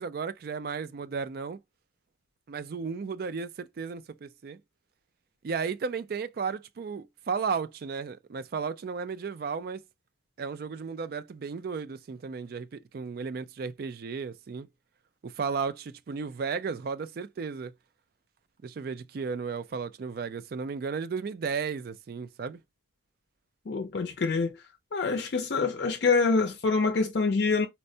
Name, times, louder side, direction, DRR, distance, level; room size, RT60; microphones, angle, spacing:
voice 1, 0.0-1.6 2.5-4.6 5.4-9.8 10.4-14.7 15.2-17.7 18.6-22.6, right 5 dB, 55° right, 0.3 m, -34 dB
voice 2, 23.7-24.6 24.9-27.7, left 4 dB, 60° left, 0.4 m, -26 dB
4.3 x 2.1 x 2.6 m
head